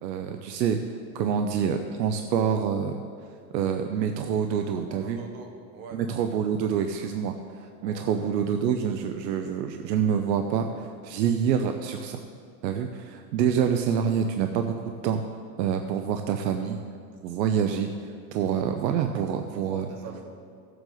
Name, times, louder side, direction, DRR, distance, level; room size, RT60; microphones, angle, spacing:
voice 1, 0.0-3.0 3.5-5.2 5.9-12.2 12.6-14.8 15.0-15.2 15.6-16.8 17.2-19.9, right 7 dB, 85° right, 6 dB, 0.8 m, -27 dB
voice 2, 4.5-6.0 7.8-8.3 13.6-13.7 19.7-20.2, right 3 dB, 55° right, 2 dB, 1.7 m, -43 dB
15.5 x 7.9 x 3.9 m, 2.2 s
supercardioid pair, 170°, 49 cm